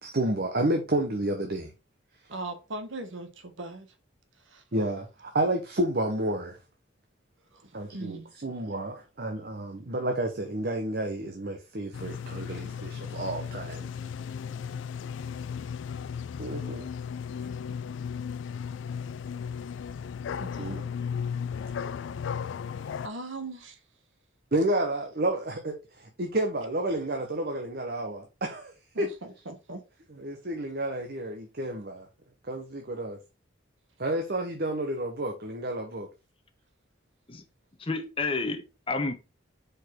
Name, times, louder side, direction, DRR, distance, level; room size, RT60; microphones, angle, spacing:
voice 1, 0.0-1.7 4.7-6.6 7.7-13.9 16.4-16.9 20.6-20.8 24.5-29.1 30.2-32.1 32.5-33.2 34.0-36.1, right 1 dB, 50° right, 0.9 m, -30 dB
voice 2, 2.3-3.9 4.4-4.6 7.5-8.3 20.4-20.8 23.0-23.8 28.9-29.8, right 2 dB, 80° right, 1.3 m, -39 dB
sound 1, 11.9-23.1, left 7 dB, 70° left, 0.3 m, -35 dB
voice 3, 37.8-39.1, left 3 dB, 30° left, 1.0 m, -30 dB
5.2 x 4.3 x 4.4 m
head